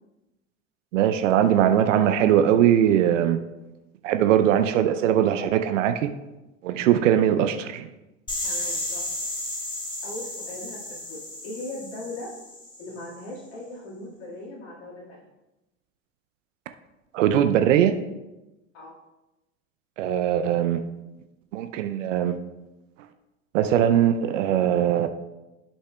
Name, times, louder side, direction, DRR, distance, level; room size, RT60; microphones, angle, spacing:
voice 1, 0.9-3.4 4.0-6.1 6.6-7.9 17.1-18.0 20.0-20.8 21.5-22.4 23.5-25.1, right 10 dB, 75° right, 9 dB, 0.6 m, -21 dB
sound 1, 8.3-13.1, left 1 dB, 10° left, 1.9 m, -33 dB
voice 2, 8.4-9.1 10.0-12.3 12.8-15.2 18.7-19.0, left 2 dB, 60° left, -6 dB, 2.0 m, -39 dB
11.5 x 5.5 x 2.3 m, 1.0 s
hypercardioid pair, 80°, 38 cm